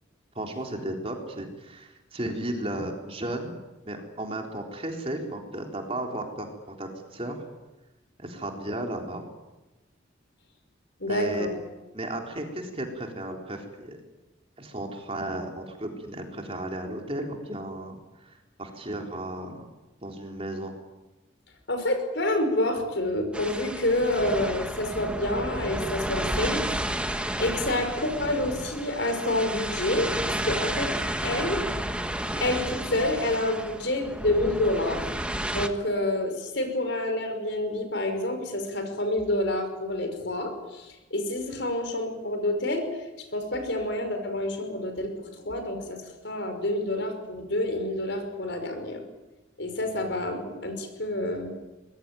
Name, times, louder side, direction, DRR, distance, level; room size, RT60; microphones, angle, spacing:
voice 1, 0.4-3.6 3.9-7.4 8.2-9.3 11.1-11.5 11.9-14.0 14.6-18.0 18.2-19.7 20.0-20.7, right 1 dB, 30° right, 2 dB, 3.8 m, -34 dB
voice 2, 11.0-11.5 21.7-26.7 26.9-30.9 31.2-31.6 32.4-35.0 35.5-42.9 43.3-49.0 49.6-51.5, left 1 dB, 60° left, 6 dB, 5.5 m, -28 dB
sound 1, 23.3-35.7, right 1 dB, 5° right, 1.3 m, -32 dB
24.0 x 21.5 x 9.1 m, 1.1 s
head